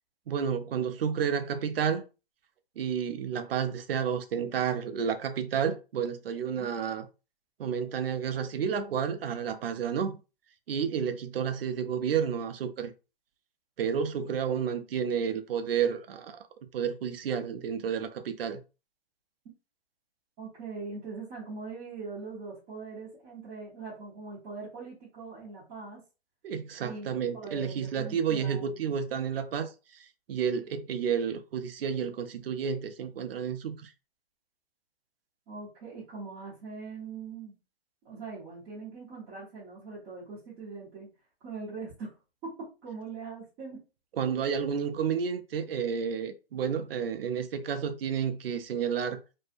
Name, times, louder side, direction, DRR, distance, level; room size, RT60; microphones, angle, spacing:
voice 1, 0.3-2.0 2.8-7.1 7.6-10.2 10.7-12.9 13.8-16.4 16.7-18.6 26.4-33.9 44.1-49.2, right 7 dB, 65° right, 0.5 m, -31 dB
voice 2, 20.4-26.0 26.8-28.9 35.5-37.6 38.0-41.1 41.4-42.1 42.4-43.8, right 4 dB, 15° right, 0.6 m, -42 dB
2.6 x 2.0 x 2.4 m
hypercardioid pair, 145°, 31 cm